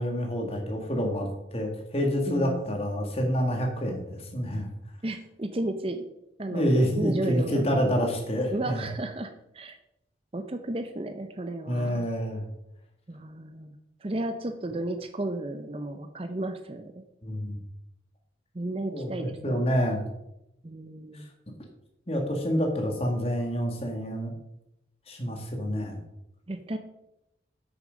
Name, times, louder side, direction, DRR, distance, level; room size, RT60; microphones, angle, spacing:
voice 1, 0.0-4.7 6.5-8.8 11.7-12.5 17.2-17.6 18.9-20.0 21.1-21.2 22.1-24.3 25.1-26.0, equal, 30° left, 2 dB, 1.9 m, -28 dB
voice 2, 2.3-2.6 5.0-6.1 6.4-6.7 7.0-7.6 8.5-9.8 10.3-12.1 13.1-13.7 14.0-17.1 18.5-19.9 20.6-21.3 26.5-26.8, right 1 dB, 30° right, 8 dB, 0.6 m, -33 dB
9.0 x 6.5 x 5.1 m, 0.87 s
head